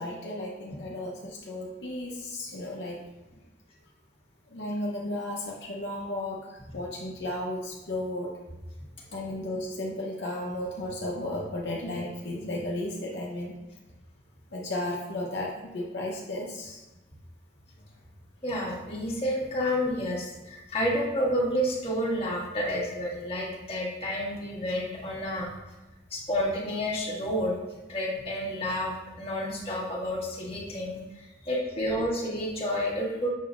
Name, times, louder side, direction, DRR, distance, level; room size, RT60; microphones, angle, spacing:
voice 1, 0.0-3.0 4.5-8.3 9.1-13.6 14.5-16.8 31.4-31.5, left 1 dB, 70° left, -2 dB, 0.8 m, -34 dB
voice 2, 18.4-25.5 26.1-27.6 27.9-28.9 29.2-33.3, equal, 35° left, -3 dB, 1.5 m, -30 dB
6.9 x 6.2 x 2.5 m, 1.1 s
head